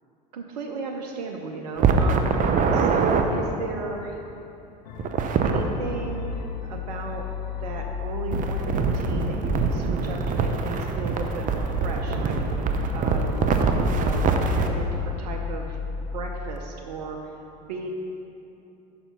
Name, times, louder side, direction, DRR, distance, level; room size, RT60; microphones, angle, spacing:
voice 1, 0.3-4.2 5.4-7.2 7.6-12.4 12.9-13.4 13.8-15.8 16.1-17.3 17.6-17.9, right 4 dB, 80° right, 2 dB, 0.7 m, -35 dB
sound 1, 1.8-3.2 5.0-5.6 8.3-14.7, right 5 dB, 40° right, 0.7 m, -24 dB
sound 2, 4.9-16.6, left 7 dB, 75° left, 0.6 m, -33 dB
7.0 x 6.0 x 5.5 m, 2.8 s
hypercardioid pair, 75°, 21 cm